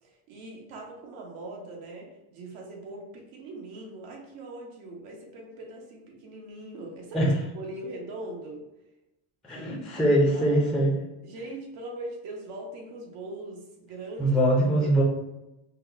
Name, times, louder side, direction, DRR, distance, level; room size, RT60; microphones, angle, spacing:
voice 1, 0.0-8.6 9.5-9.8 10.3-10.7 11.2-14.4 14.8-15.0, right 2 dB, 80° right, -1 dB, 1.2 m, -41 dB
voice 2, 9.4-11.0 14.2-15.0, right 1 dB, ahead, -4 dB, 0.4 m, -22 dB
5.6 x 2.0 x 2.6 m, 0.93 s
cardioid pair, 160°, 45 cm